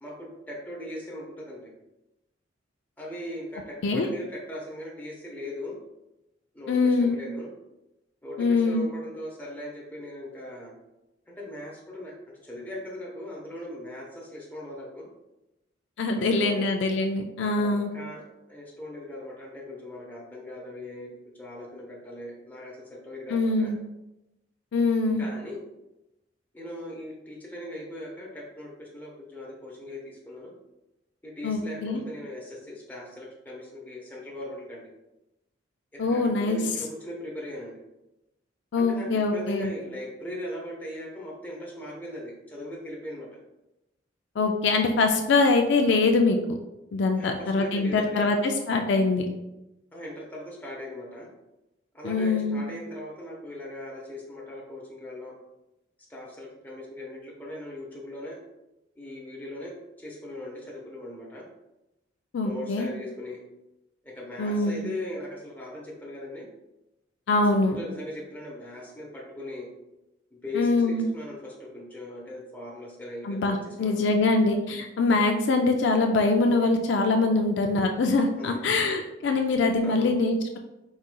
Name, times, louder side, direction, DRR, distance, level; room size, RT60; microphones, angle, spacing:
voice 1, 0.0-1.7 3.0-5.7 6.5-7.5 8.2-10.7 11.3-12.1 12.4-15.1 16.2-16.6 17.4-18.2 18.5-23.7 25.2-25.6 26.5-30.5 31.2-34.9 35.9-37.8 38.8-43.3 47.1-48.3 49.9-51.3 51.9-55.3 56.1-58.4 59.0-61.4 62.4-63.4 64.0-66.5 67.8-69.7 70.4-74.1 78.4-78.6 79.8-80.1, left 1 dB, 10° left, -3 dB, 0.9 m, -39 dB
voice 2, 6.7-7.2 8.4-8.9 16.0-17.9 23.3-23.8 24.7-25.3 31.4-32.0 36.0-36.6 38.7-39.7 44.4-46.6 46.9-49.3 52.0-52.6 62.3-62.9 64.4-64.9 67.3-67.8 70.5-71.1 73.2-80.6, left 3 dB, 65° left, 4 dB, 0.4 m, -23 dB
4.9 x 4.0 x 2.2 m, 0.94 s
head